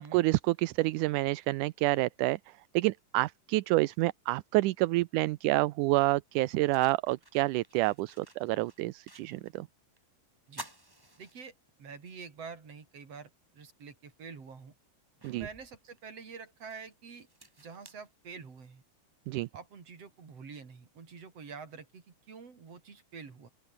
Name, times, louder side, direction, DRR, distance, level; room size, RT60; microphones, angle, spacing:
voice 1, 0.0-2.4 2.7-9.7 15.2-15.5 19.3-19.5, right 19 dB, 80° right, 2.1 m, -28 dB
sound 1, 6.3-9.7 10.0-10.1 10.5-11.9 12.4-12.5 13.9-14.0 14.6-18.8, right 1 dB, 5° right, 2.7 m, -52 dB
voice 2, 11.2-11.5 11.8-14.7 15.2-17.3 17.6-18.8 19.5-23.5, right 5 dB, 50° right, 4.7 m, -47 dB
open air
omnidirectional pair, 3.8 m